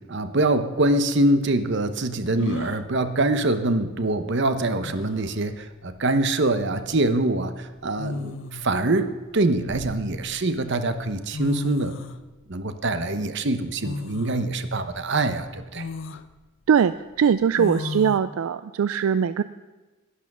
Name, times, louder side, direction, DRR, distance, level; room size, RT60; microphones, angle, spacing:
voice 1, 0.0-12.0 12.5-15.9, right 2 dB, 55° right, 10 dB, 0.9 m, -24 dB
sound 1, 0.8-0.9 2.4-2.9 4.4-4.5 4.8-5.3 6.7-6.9 8.0-8.7 9.4-10.4 11.1-11.2 11.3-12.2 13.8-14.4 14.9-15.0 15.7-16.2 17.6-18.2, left 3 dB, 60° left, 0.6 m, -33 dB
voice 2, 16.7-19.4, right 7 dB, 75° right, 14 dB, 0.3 m, -21 dB
11.5 x 11.5 x 6.1 m, 1.2 s
head